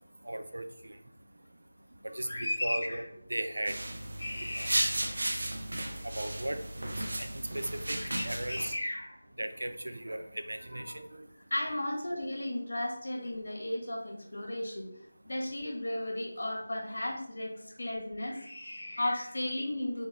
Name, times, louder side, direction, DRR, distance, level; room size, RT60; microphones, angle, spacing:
voice 1, 0.3-0.6 2.1-3.0 3.3-3.7 4.6-4.7 6.2-6.6 7.2-8.0 8.2-8.7 9.4-11.0, right 1 dB, 85° right, 8 dB, 0.8 m, -36 dB
voice 2, 2.2-3.1 4.2-5.1 7.1-7.2 8.0-9.2 10.7-11.0 11.5-20.1, left 1 dB, 70° left, -1 dB, 2.2 m, -35 dB
sound 1, 3.7-8.7, right 1 dB, 65° right, 1.2 m, -34 dB
5.2 x 4.7 x 3.8 m, 0.70 s
figure-of-eight pair, 170°, 0 cm